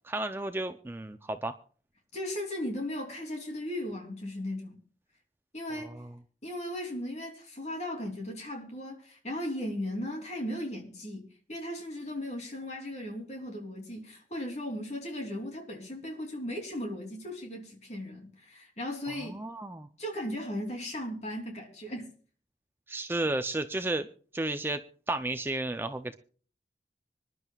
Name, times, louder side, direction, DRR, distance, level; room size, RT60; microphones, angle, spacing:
voice 1, 0.0-1.6 5.8-6.1 19.1-19.9 22.9-24.1 24.3-24.8 25.1-26.2, right 2 dB, 10° right, 0.5 m, -33 dB
voice 2, 2.1-4.8 5.5-5.9 6.4-19.4 20.0-22.1, left 1 dB, 40° left, 3.1 m, -37 dB
25.5 x 11.0 x 2.4 m
head